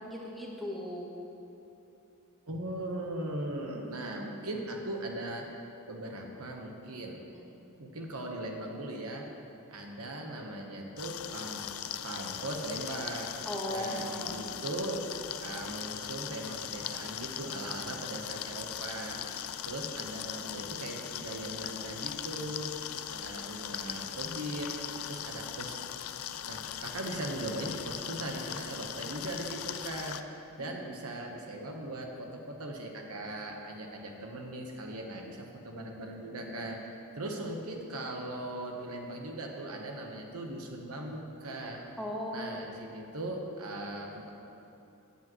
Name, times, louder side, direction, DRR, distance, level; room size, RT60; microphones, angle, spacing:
voice 1, 0.1-1.1 7.3-7.5 13.4-14.3 30.6-30.8 42.0-42.7, equal, ahead, -4 dB, 1.3 m, -37 dB
voice 2, 2.5-7.2 7.8-9.3 9.7-11.7 12.0-15.1 15.4-19.3 19.6-22.7 22.9-24.8 25.1-25.8 26.4-30.3 30.6-42.0 42.3-44.3, right 1 dB, 85° right, 1 dB, 1.2 m, -39 dB
sound 1, 11.0-30.2, left 10 dB, 75° left, 0.4 m, -39 dB
16.5 x 8.5 x 3.1 m, 2.9 s
head